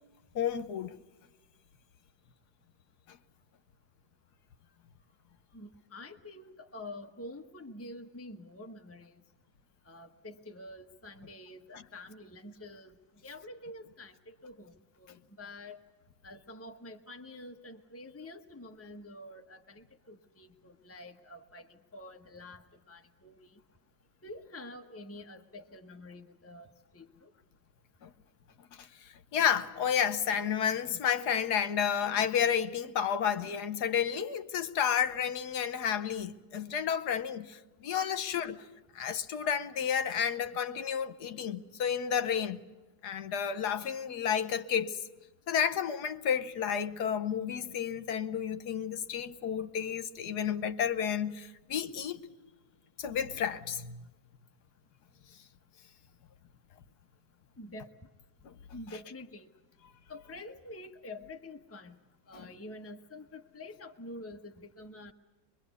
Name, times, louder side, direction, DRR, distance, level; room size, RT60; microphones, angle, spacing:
voice 1, 0.3-1.0 3.1-3.2 28.0-28.1 28.8-28.9 29.3-38.6 38.9-42.6 43.0-45.0 45.5-52.2 53.0-54.0 58.4-58.5 62.3-62.4, left 8 dB, 65° left, 1.5 m, -31 dB
voice 2, 5.5-9.2 9.9-13.0 13.2-15.8 16.2-23.6 24.2-27.3 57.6-57.9 58.7-59.5 60.1-62.0 62.3-65.1, left 1 dB, 10° left, 0.7 m, -47 dB
23.5 x 23.0 x 8.2 m
omnidirectional pair, 1.9 m